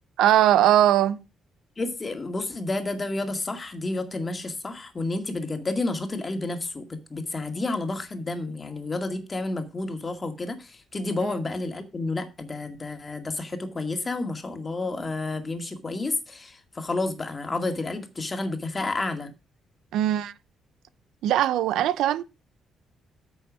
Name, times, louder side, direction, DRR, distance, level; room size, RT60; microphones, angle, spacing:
voice 1, 0.2-1.2 11.2-11.3 19.9-20.3 21.2-22.2, right 12 dB, 85° right, 0.5 m, -20 dB
voice 2, 1.8-19.3, left 2 dB, 30° left, 2.1 m, -30 dB
9.0 x 6.2 x 6.2 m
cardioid pair, 90°, 0 cm